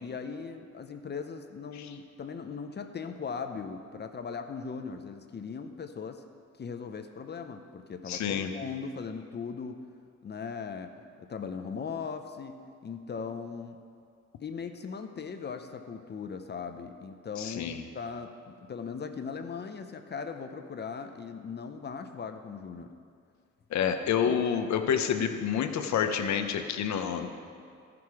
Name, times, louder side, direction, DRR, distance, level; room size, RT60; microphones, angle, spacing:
voice 1, 0.0-6.2 6.6-9.8 10.2-10.9 11.2-13.8 14.4-22.9 23.8-23.9 24.2-24.4, left 5 dB, 35° left, 7 dB, 0.6 m, -39 dB
voice 2, 8.1-8.5 17.4-17.8 23.7-27.3, left 8 dB, 65° left, 7 dB, 0.8 m, -28 dB
13.5 x 5.9 x 4.8 m, 2.3 s
cardioid pair, 90°, 30 cm